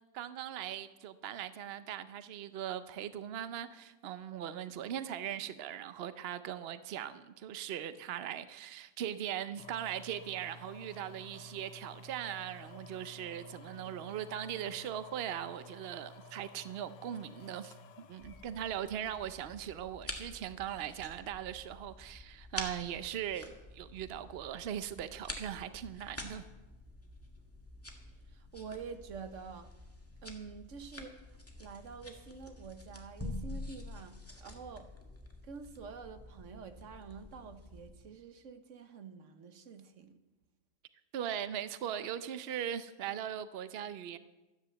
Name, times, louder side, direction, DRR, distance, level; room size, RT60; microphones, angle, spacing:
voice 1, 0.1-26.5 41.1-44.2, right 10 dB, 80° right, 0.5 m, -40 dB
sound 1, 9.6-19.6 20.2-20.3, left 2 dB, 85° left, 1.5 m, -53 dB
sound 2, 18.2-37.9, left 1 dB, 10° left, 1.7 m, -48 dB
voice 2, 28.3-29.7 30.2-31.3 31.6-34.9 35.4-40.2, right 5 dB, 50° right, 1.2 m, -48 dB
sound 3, 36.1-36.7, right 2 dB, 25° right, 1.9 m, -60 dB
13.5 x 9.8 x 7.7 m
omnidirectional pair, 1.9 m